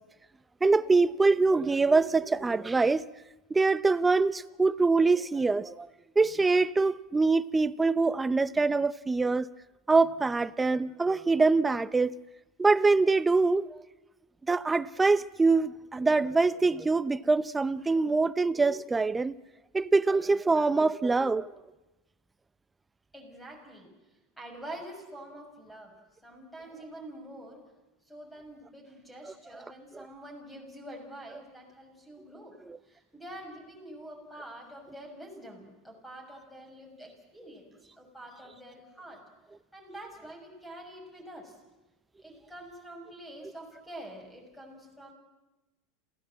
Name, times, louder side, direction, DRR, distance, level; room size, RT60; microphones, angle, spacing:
voice 1, 0.6-3.0 3.5-5.9 6.2-9.5 9.9-12.2 12.6-13.7 14.5-19.3 19.7-21.5 30.0-30.1 32.7-32.8, right 3 dB, 15° right, 0.7 m, -24 dB
voice 2, 23.1-23.9 24.4-27.7 28.0-32.6 32.8-39.2 39.7-41.6 42.2-45.1, right 1 dB, 5° left, 6.4 m, -46 dB
27.5 x 16.0 x 7.7 m
supercardioid pair, 110°, 0 cm